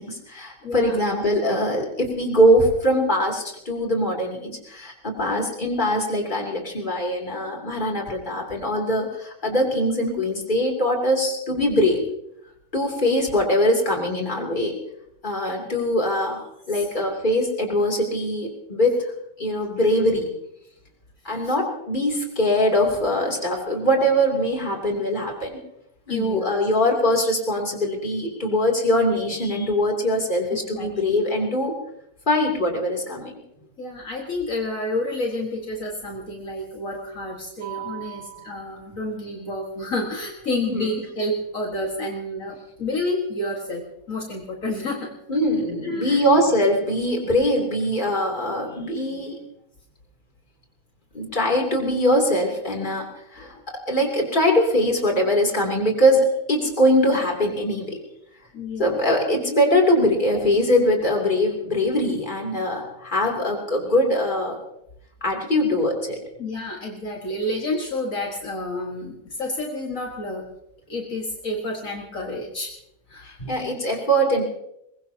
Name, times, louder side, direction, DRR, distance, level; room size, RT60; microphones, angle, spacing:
voice 1, 0.0-12.0 12.7-14.8 15.2-19.1 19.4-20.3 21.2-25.6 26.1-31.7 32.3-33.4 37.6-38.5 40.7-40.8 45.3-49.4 51.1-53.1 53.3-58.0 58.8-64.6 65.2-66.2 73.2-74.4, equal, 35° left, 0 dB, 3.1 m, -22 dB
voice 2, 0.6-1.0 16.7-16.8 21.3-21.5 26.1-26.6 30.5-31.2 33.8-45.1 45.8-46.3 53.4-53.6 58.5-59.0 60.3-60.4 66.4-70.4 70.9-72.7 73.1-73.4, left 1 dB, 65° left, 0 dB, 2.2 m, -30 dB
22.5 x 21.0 x 2.8 m, 0.79 s
omnidirectional pair, 1.5 m